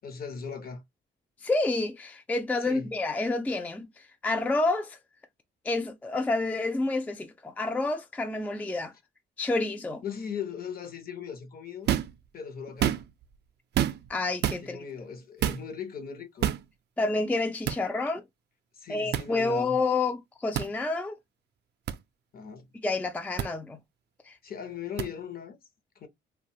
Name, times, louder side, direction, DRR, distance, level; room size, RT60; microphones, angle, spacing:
voice 1, 0.0-0.8 2.6-2.9 10.0-11.9 12.3-13.0 14.6-16.5 18.7-19.8 22.3-22.7 24.4-25.6 26.0-26.1, left 7 dB, 50° left, 0.7 m, -38 dB
voice 2, 1.4-5.0 5.7-8.9 9.4-10.0 14.1-14.8 17.0-18.2 18.9-21.2 22.8-23.8 24.3-24.4, left 3 dB, 10° left, 0.3 m, -29 dB
sound 1, 11.9-12.2 12.7-13.2 13.7-14.1 14.4-14.6 15.4-15.6 16.4-16.6 17.6-17.8 19.1-19.3 20.5-20.7 21.9-22.0 23.4-23.5 25.0-25.1, right 10 dB, 55° right, 0.4 m, -27 dB
2.5 x 2.2 x 2.7 m
cardioid pair, 90°, 20 cm